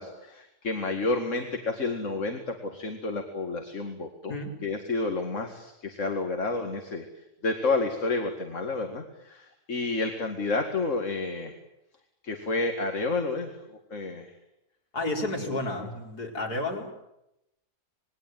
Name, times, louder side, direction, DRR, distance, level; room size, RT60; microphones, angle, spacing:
voice 1, 0.0-7.0 7.4-11.5 12.2-13.6 13.9-14.3 15.4-15.6, left 3 dB, 50° left, 5 dB, 2.4 m, -30 dB
voice 2, 14.9-16.9, left 2 dB, 90° left, 1 dB, 5.0 m, -31 dB
26.5 x 21.5 x 9.3 m, 0.88 s
omnidirectional pair, 1.6 m